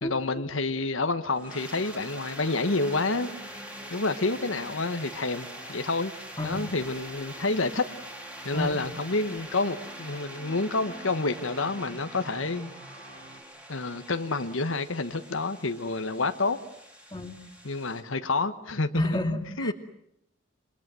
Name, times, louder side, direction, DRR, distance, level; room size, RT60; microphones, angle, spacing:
voice 1, 0.0-3.3 3.9-6.1 6.4-7.9 8.4-12.7 13.7-16.6 17.6-19.2 19.6-19.7, left 3 dB, 80° left, 1.4 m, -28 dB
sound 1, 1.3-18.0, right 1 dB, 5° right, 3.6 m, -44 dB
sound 2, 1.4-13.4, right 1 dB, 80° right, 6.1 m, -49 dB
voice 2, 18.9-19.7, left 1 dB, 20° left, 2.5 m, -30 dB
27.0 x 24.0 x 7.7 m
head